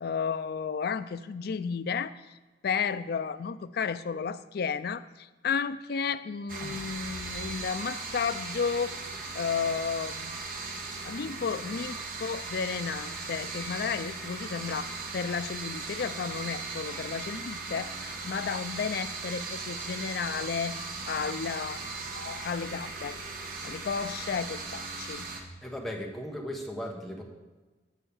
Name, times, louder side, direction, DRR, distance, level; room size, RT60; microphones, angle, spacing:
voice 1, 0.0-2.4 2.6-8.9 9.3-10.4 11.0-20.8 21.0-21.8 22.1-23.2 23.6-25.3, left 6 dB, 60° left, 13 dB, 0.4 m, -33 dB
sound 1, 6.5-25.4, right 3 dB, 55° right, 1.2 m, -38 dB
voice 2, 25.6-27.2, equal, ahead, -1 dB, 1.3 m, -37 dB
8.9 x 5.4 x 7.1 m, 1.2 s
head